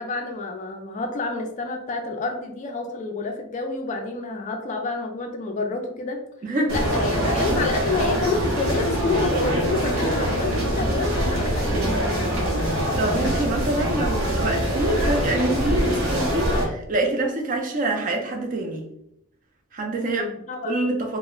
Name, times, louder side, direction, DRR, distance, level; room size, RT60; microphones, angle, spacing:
voice 1, 0.0-6.2 6.7-12.3 19.9-20.7, left 3 dB, 35° left, 0.3 m, -29 dB
voice 2, 6.4-6.8 13.0-18.9 19.7-20.3 20.6-21.2, right 2 dB, 35° right, 0.4 m, -25 dB
sound 1, 6.7-16.6, equal, 65° right, 0.7 m, -24 dB
2.0 x 2.0 x 3.7 m
head